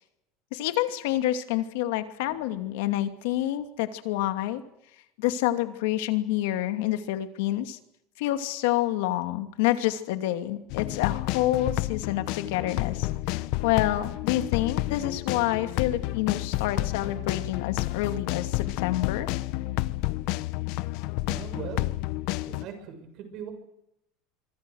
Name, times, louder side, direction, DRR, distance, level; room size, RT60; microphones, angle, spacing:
voice 1, 0.5-4.6 5.2-7.8 8.2-19.3, left 14 dB, 80° left, 8 dB, 2.6 m, -28 dB
sound 1, 10.7-22.7, left 18 dB, 55° left, 0.9 m, -30 dB
voice 2, 21.3-22.0 22.4-23.5, right 7 dB, 40° right, 7 dB, 7.0 m, -39 dB
25.5 x 24.0 x 6.5 m, 0.80 s
cardioid pair, 170°, 0 cm